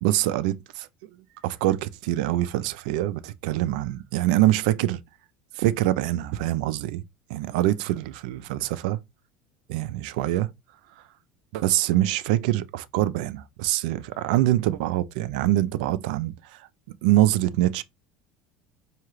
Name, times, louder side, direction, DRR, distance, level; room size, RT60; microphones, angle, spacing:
voice 1, 0.0-0.9 1.4-5.0 5.6-7.0 7.3-9.0 9.7-10.5 11.5-16.3 17.0-17.8, right 15 dB, 80° right, 0.4 m, -24 dB
4.7 x 2.8 x 3.1 m
supercardioid pair, 120°, 4 cm